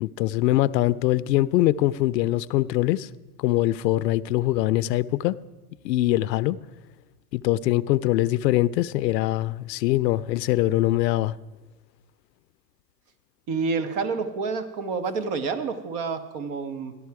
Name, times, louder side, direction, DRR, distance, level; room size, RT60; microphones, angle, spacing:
voice 1, 0.0-3.1 3.4-5.4 5.8-6.6 7.3-11.4, left 15 dB, 85° left, 0.5 m, -23 dB
voice 2, 13.5-16.9, right 4 dB, 50° right, 1.2 m, -28 dB
14.5 x 11.0 x 4.7 m
hypercardioid pair, 115°, 49 cm